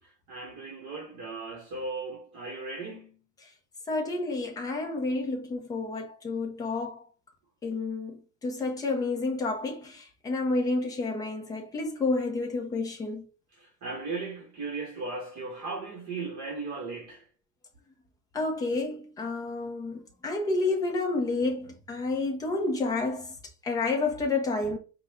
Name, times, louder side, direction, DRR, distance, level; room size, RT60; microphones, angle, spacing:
voice 1, 0.0-3.2 13.5-17.2, right 3 dB, 35° right, 1.0 m, -37 dB
voice 2, 3.9-7.0 7.6-8.2 8.4-13.2 18.3-23.3 23.6-24.8, left 3 dB, 10° left, 0.3 m, -30 dB
4.9 x 2.2 x 3.3 m
supercardioid pair, 140°, 47 cm